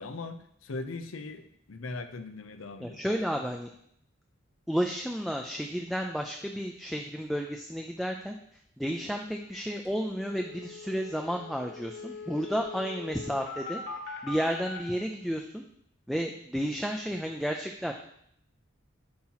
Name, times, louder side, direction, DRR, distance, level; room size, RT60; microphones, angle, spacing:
voice 1, 0.0-1.4 1.7-3.0, left 3 dB, 80° left, 9 dB, 0.6 m, -39 dB
voice 2, 2.8-3.7 4.7-8.4 8.8-13.8 14.2-15.6 16.1-17.9, equal, ahead, 2 dB, 0.3 m, -32 dB
sound 1, 9.5-9.6 9.9-10.0 10.2-14.8, left 4 dB, 65° left, 1.5 m, -42 dB
8.6 x 2.9 x 5.6 m, 0.70 s
head